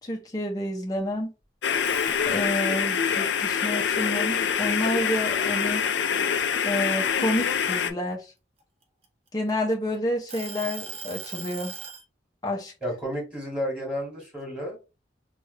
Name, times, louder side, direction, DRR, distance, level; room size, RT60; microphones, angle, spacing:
voice 1, 0.0-1.3 2.3-5.8 6.6-8.3 9.3-11.8 12.4-12.7, left 1 dB, 20° left, 0.6 m, -29 dB
sound 1, 1.6-7.9, left 7 dB, 80° left, 0.5 m, -25 dB
sound 2, 1.7-2.7 3.2-5.0 5.4-5.7 6.1-7.9 8.6-9.7 10.3-12.0, right 5 dB, 30° right, 0.6 m, -39 dB
voice 2, 12.8-14.8, equal, 5° right, 1.7 m, -31 dB
3.1 x 2.3 x 3.1 m
head